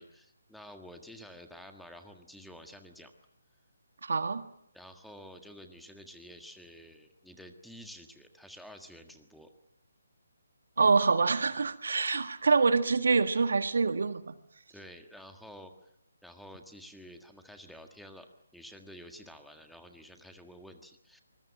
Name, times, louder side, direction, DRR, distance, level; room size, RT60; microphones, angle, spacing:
voice 1, 0.0-3.1 4.7-9.5 14.7-15.7 16.2-18.3 18.5-21.2, equal, ahead, 6 dB, 1.6 m, -50 dB
voice 2, 4.0-4.4 10.8-14.3, right 4 dB, 60° right, 10 dB, 1.6 m, -26 dB
25.5 x 21.0 x 7.7 m, 0.77 s
figure-of-eight pair, 145°, 0 cm